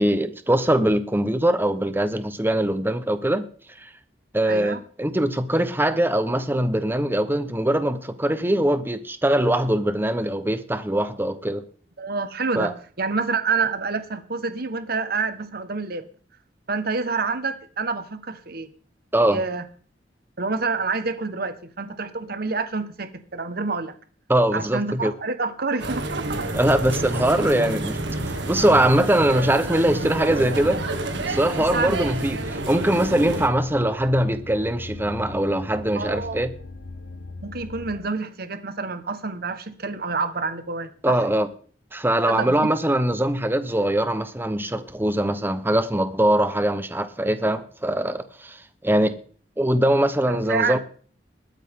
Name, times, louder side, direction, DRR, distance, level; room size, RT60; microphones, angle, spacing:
voice 1, 0.0-3.5 4.3-11.6 12.5-12.7 19.1-19.4 24.3-25.1 26.5-28.0 28.5-30.8 31.2-36.5 41.0-41.5 41.9-48.6 48.8-49.2 49.6-50.8, right 1 dB, 10° right, 1.0 m, -22 dB
voice 2, 4.4-4.8 12.0-12.7 13.0-16.1 16.7-18.7 19.3-19.6 20.4-23.9 24.5-26.4 31.6-32.1 35.9-36.4 37.4-41.2 42.3-42.7 50.3-50.8, right 4 dB, 60° right, 1.4 m, -28 dB
sound 1, 25.8-33.5, right 2 dB, 75° right, 1.9 m, -29 dB
sound 2, 30.3-38.0, left 3 dB, 85° left, 0.9 m, -40 dB
21.5 x 9.1 x 3.7 m
head